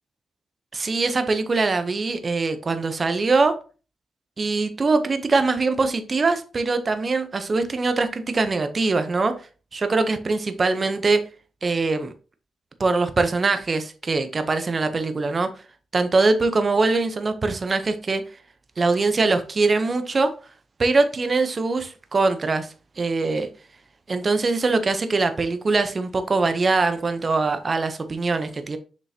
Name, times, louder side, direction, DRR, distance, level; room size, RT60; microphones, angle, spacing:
voice 1, 0.7-3.6 4.4-9.3 9.7-11.2 11.6-12.1 12.8-15.5 15.9-18.2 18.8-20.3 20.8-23.5 24.1-28.8, right 3 dB, 35° right, 9 dB, 0.7 m, -22 dB
6.6 x 5.2 x 2.8 m, 0.35 s
cardioid pair, 115°, 0 cm